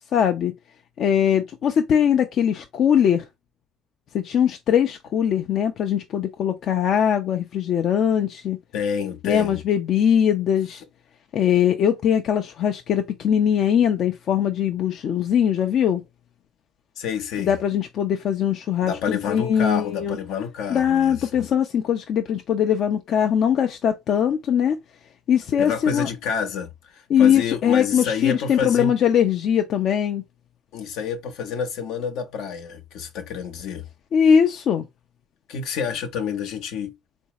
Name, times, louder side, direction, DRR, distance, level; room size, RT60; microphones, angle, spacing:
voice 1, 0.1-0.5 1.0-3.2 4.1-8.6 9.2-10.8 11.3-16.0 17.4-20.2 20.7-24.8 25.3-26.1 27.1-30.2 34.1-34.8, left 8 dB, 60° left, 0.6 m, -21 dB
voice 2, 8.7-9.6 17.0-17.5 18.8-21.4 25.6-28.9 30.7-33.9 35.5-37.0, left 6 dB, 80° left, 0.9 m, -29 dB
3.8 x 2.6 x 2.9 m
cardioid pair, 95°, 0 cm